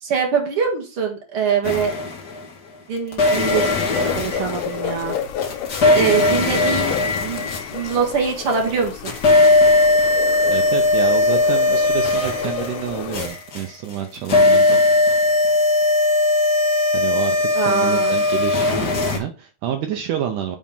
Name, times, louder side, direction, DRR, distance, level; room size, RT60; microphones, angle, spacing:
voice 1, 0.0-1.9 2.9-3.7 4.2-5.2 5.9-6.9 7.2-9.1 17.5-18.1, right 6 dB, 45° right, 2 dB, 2.0 m, -23 dB
sound 1, 1.6-2.5 3.1-8.5 8.8-19.2, left 2 dB, 40° left, 1.6 m, -19 dB
sound 2, 3.5-13.3, left 8 dB, 85° left, 2.7 m, -32 dB
voice 2, 10.5-14.8 16.9-20.6, right 9 dB, 75° right, 5 dB, 2.0 m, -28 dB
7.4 x 4.3 x 5.4 m, 0.33 s
omnidirectional pair, 4.3 m